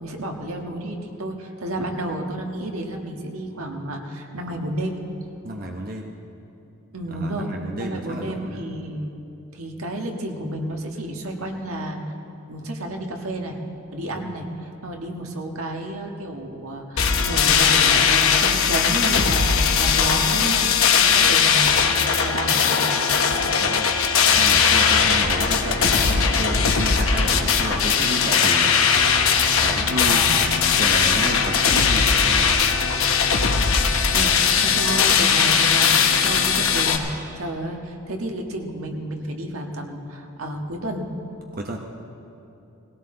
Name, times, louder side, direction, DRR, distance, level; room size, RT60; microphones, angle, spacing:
voice 1, 0.0-5.0 6.9-9.1 9.5-12.0 12.5-13.6 13.9-20.7 21.1-21.8 22.2-22.9 24.8-25.2 30.0-30.5 34.1-37.1 37.4-41.1, right 1 dB, 80° right, 2 dB, 1.5 m, -31 dB
voice 2, 5.4-6.1 7.1-8.6 14.1-14.3 21.1-21.3 23.6-23.9 24.2-28.8 29.6-30.2 30.8-32.6 34.1-34.4 41.5-41.8, right 1 dB, 40° right, 1 dB, 0.9 m, -31 dB
sound 1, 17.0-37.0, left 6 dB, 75° left, 1.1 m, -19 dB
19.5 x 17.0 x 3.8 m, 2.9 s
head